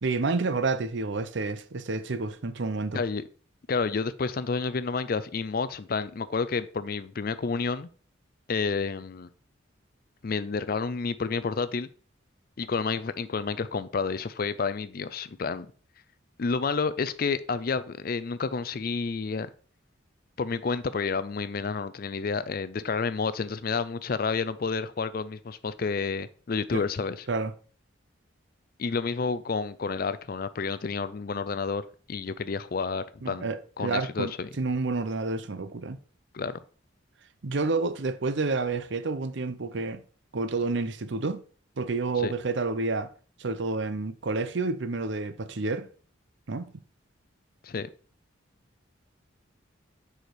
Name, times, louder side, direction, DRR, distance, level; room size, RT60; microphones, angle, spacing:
voice 1, 0.0-3.0 26.7-26.8 27.3-27.5 33.2-36.0 37.4-40.0 40.3-41.4 41.8-43.1 43.4-45.9 46.5-46.7, right 3 dB, 65° right, 0.6 m, -29 dB
voice 2, 3.7-7.9 8.5-9.3 10.2-11.9 12.6-15.7 16.4-19.5 20.4-27.2 28.8-33.5 33.8-34.5 36.3-36.6 42.2-42.3 47.6-47.9, left 4 dB, 45° left, 0.4 m, -30 dB
6.6 x 5.0 x 4.6 m
head